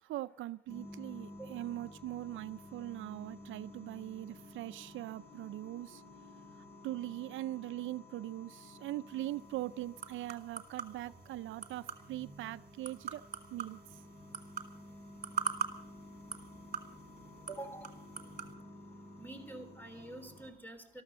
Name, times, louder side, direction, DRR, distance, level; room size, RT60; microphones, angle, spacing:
voice 1, 0.0-6.0 6.6-13.2 13.5-14.0, right 15 dB, 75° right, 15 dB, 0.5 m, -41 dB
sound 1, 0.7-20.5, left 1 dB, 30° left, 6.7 m, -53 dB
sound 2, 9.1-18.5, right 7 dB, 45° right, 1.9 m, -44 dB
voice 2, 17.5-17.9 19.2-21.0, right 2 dB, 10° left, 7 dB, 3.6 m, -46 dB
13.5 x 13.0 x 6.9 m, 0.73 s
cardioid pair, 90°, 20 cm